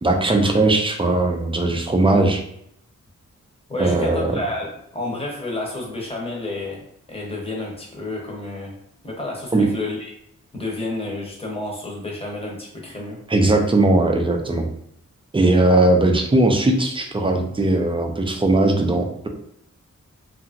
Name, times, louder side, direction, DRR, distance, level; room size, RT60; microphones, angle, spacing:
voice 1, 0.0-2.4 3.8-4.4 9.5-9.7 13.3-14.7 15.3-19.3, right 2 dB, 20° right, 3 dB, 0.4 m, -19 dB
voice 2, 3.7-8.7 9.0-10.1 10.5-13.2, left 2 dB, 20° left, -2 dB, 0.8 m, -30 dB
2.8 x 2.5 x 2.5 m, 0.73 s
wide cardioid pair, 120°, 29 cm